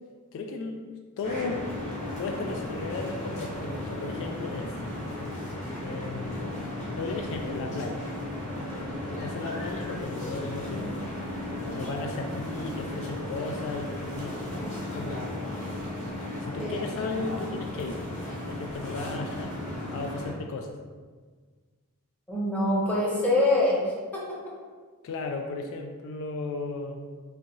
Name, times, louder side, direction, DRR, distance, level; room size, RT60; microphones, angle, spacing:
voice 1, 0.3-0.8 1.2-1.7 2.2-4.8 5.8-8.0 9.1-11.1 11.7-14.4 14.9-15.5 16.4-18.0 18.4-19.6 19.9-20.8 25.0-27.0, left 3 dB, 60° left, 3 dB, 0.3 m, -35 dB
sound 1, 1.2-20.3, left 1 dB, 30° left, 1.0 m, -35 dB
voice 2, 22.3-24.2, left 1 dB, 5° left, -6 dB, 0.8 m, -24 dB
3.9 x 2.7 x 2.9 m, 1.5 s
head